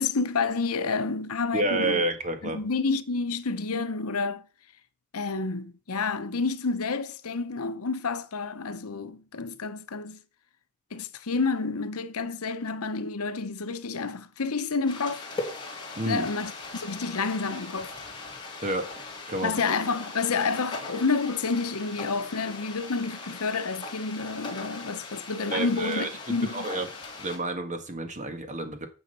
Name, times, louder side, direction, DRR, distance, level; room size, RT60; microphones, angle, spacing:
voice 1, 0.0-2.0 2.5-4.4 5.1-10.2 10.9-15.3 16.1-17.9 19.4-26.7, left 4 dB, 80° left, 0.8 m, -29 dB
voice 2, 1.5-2.6 16.0-16.2 18.6-18.9 19.3-19.5 25.5-26.9 27.2-28.9, right 2 dB, 35° right, 1.5 m, -29 dB
sound 1, 14.9-27.4, left 3 dB, 20° left, 2.8 m, -40 dB
9.7 x 6.3 x 5.5 m
head